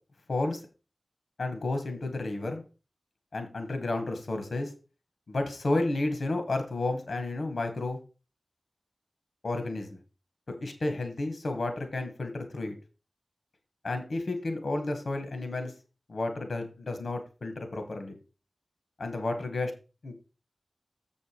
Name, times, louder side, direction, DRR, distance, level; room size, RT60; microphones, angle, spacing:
voice 1, 0.3-0.6 1.4-2.6 3.3-4.7 5.3-8.0 9.4-10.0 10.6-12.7 13.8-15.7 16.1-18.2 19.0-19.7 20.0-20.1, left 2 dB, 80° left, 7 dB, 2.0 m, -31 dB
7.8 x 5.4 x 5.2 m, 0.33 s
cardioid pair, 40°, 0 cm